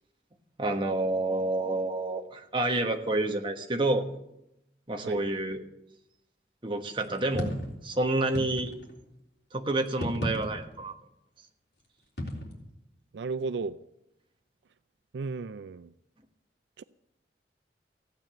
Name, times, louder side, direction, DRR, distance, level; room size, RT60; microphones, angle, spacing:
voice 1, 0.6-4.1 4.9-5.6 6.6-7.5 7.8-8.7 9.5-10.9, right 2 dB, 30° right, 1.4 m, -28 dB
sound 1, 7.0-7.8 8.4-9.0 9.9-10.9 12.2-12.5, left 1 dB, 65° left, 3.5 m, -34 dB
voice 2, 13.1-13.8 15.1-15.9 16.8-16.9, right 4 dB, 80° right, 0.4 m, -34 dB
15.0 x 9.0 x 7.7 m
head